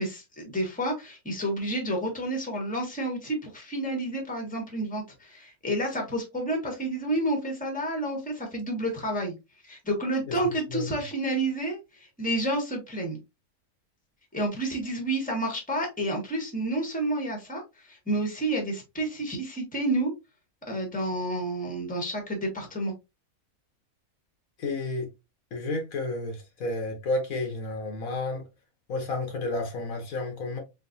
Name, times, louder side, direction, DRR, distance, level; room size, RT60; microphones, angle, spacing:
voice 1, 0.0-9.4 9.6-13.2 14.3-20.1 20.7-22.9, right 1 dB, 5° left, 1.3 m, -30 dB
voice 2, 24.6-25.1 25.5-28.4 28.9-30.6, left 2 dB, 65° left, 1.4 m, -31 dB
3.8 x 3.6 x 2.6 m
omnidirectional pair, 1.6 m